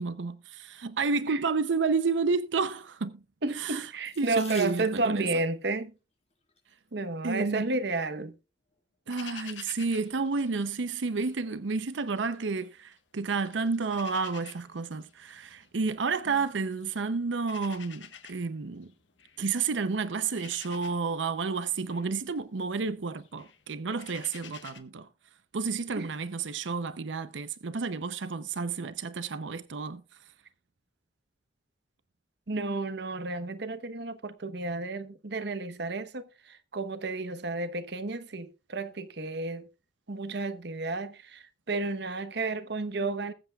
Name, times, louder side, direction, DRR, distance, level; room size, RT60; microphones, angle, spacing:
voice 1, 0.0-3.1 3.5-3.9 4.2-5.3 7.2-7.7 9.1-18.9 19.4-25.1 25.5-30.0, right 4 dB, 85° right, 0.7 m, -31 dB
voice 2, 3.4-5.9 6.9-8.3 26.0-26.1 32.5-39.7 40.1-43.3, right 3 dB, 65° right, 1.0 m, -32 dB
Water tap faucet / Sink (filling or washing), 4.0-5.3 6.3-6.7 7.4-7.5 7.8-8.0, left 5 dB, 35° left, 4.0 m, -47 dB
sound 1, 9.1-11.4 11.7-13.0 13.3-24.8, left 8 dB, 85° left, 1.3 m, -50 dB
21.0 x 7.9 x 2.3 m
head